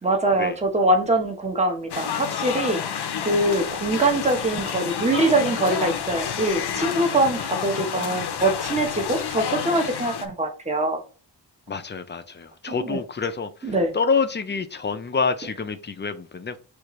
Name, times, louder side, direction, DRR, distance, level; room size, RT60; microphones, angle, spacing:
voice 1, 0.0-2.8 3.2-11.0 12.7-13.0 13.6-13.9, right 2 dB, 15° right, 0.9 m, -23 dB
sound 1, 1.9-10.3, left 8 dB, 70° left, 0.6 m, -29 dB
voice 2, 11.7-16.6, left 5 dB, 25° left, 0.4 m, -27 dB
6.5 x 2.5 x 3.0 m
wide cardioid pair, 125°, 41 cm